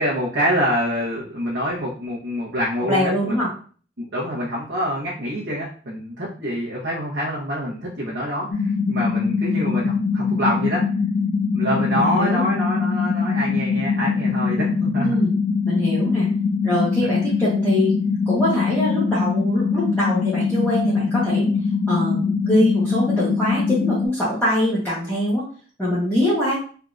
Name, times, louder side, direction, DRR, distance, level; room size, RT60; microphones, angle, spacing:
voice 1, 0.0-3.4 4.0-10.8 11.5-15.1, equal, 70° right, -6 dB, 1.0 m, -26 dB
voice 2, 2.9-3.5 11.9-12.4 15.0-15.3 15.7-16.3 16.6-17.9 18.3-21.5 21.9-25.4 25.8-26.6, left 1 dB, 10° left, -10 dB, 1.0 m, -23 dB
sound 1, 8.5-24.1, left 5 dB, 50° left, 0.3 m, -22 dB
3.5 x 2.8 x 2.5 m, 0.42 s
head